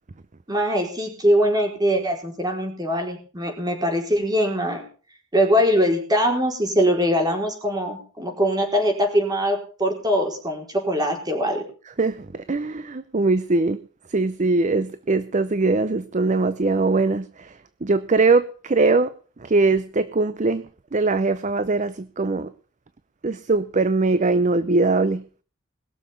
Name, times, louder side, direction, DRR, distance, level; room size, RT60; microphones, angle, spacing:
voice 1, 0.5-4.8 5.3-11.6, equal, 20° right, 4.5 m, -22 dB
voice 2, 12.0-13.8 14.1-19.1 19.4-20.6 20.9-22.5 23.2-25.2, right 3 dB, 35° right, 0.6 m, -21 dB
21.0 x 7.2 x 7.0 m
head